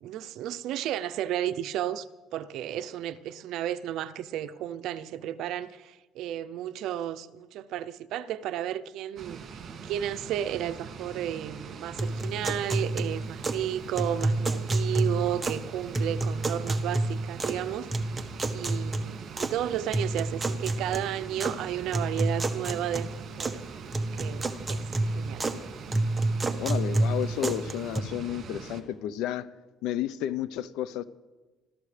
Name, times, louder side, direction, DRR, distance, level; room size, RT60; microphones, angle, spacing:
voice 1, 0.0-17.9 18.5-23.1 23.4-23.6 24.1-25.5, right 11 dB, 70° right, 0.6 m, -33 dB
sound 1, 9.2-28.8, right 5 dB, 50° right, 2.3 m, -43 dB
sound 2, 12.0-13.7 14.0-15.7 15.9-17.6 17.9-19.6 19.9-21.6 21.9-23.6 23.9-25.6 25.9-28.0, right 2 dB, 15° right, 1.2 m, -29 dB
voice 2, 26.6-29.5 29.8-31.0, left 11 dB, 80° left, 0.7 m, -32 dB
26.0 x 14.0 x 3.4 m
cardioid pair, 120°, 0 cm